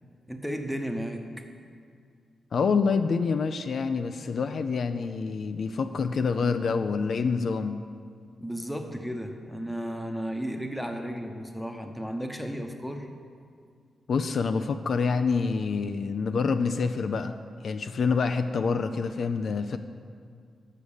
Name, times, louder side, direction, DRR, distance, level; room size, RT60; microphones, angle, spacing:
voice 1, 0.3-1.5 8.4-13.1, equal, 5° left, 5 dB, 0.8 m, -34 dB
voice 2, 2.5-7.8 14.1-17.3 17.6-19.8, left 5 dB, 60° left, 9 dB, 0.3 m, -27 dB
6.6 x 6.3 x 7.1 m, 2.2 s
cardioid pair, 100°, 0 cm